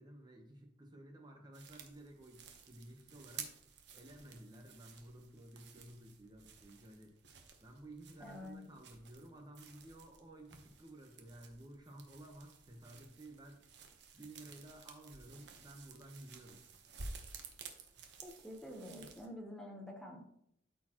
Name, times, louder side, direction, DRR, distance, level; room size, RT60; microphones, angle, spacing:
voice 1, 0.0-3.5 3.9-13.6 14.1-16.6, right 1 dB, 20° right, 2 dB, 1.0 m, -54 dB
sound 1, 1.5-19.3, right 5 dB, 70° right, 1.0 m, -54 dB
voice 2, 8.2-8.6 18.2-20.2, left 1 dB, 5° left, 0 dB, 0.9 m, -48 dB
13.0 x 4.4 x 3.0 m, 0.73 s
head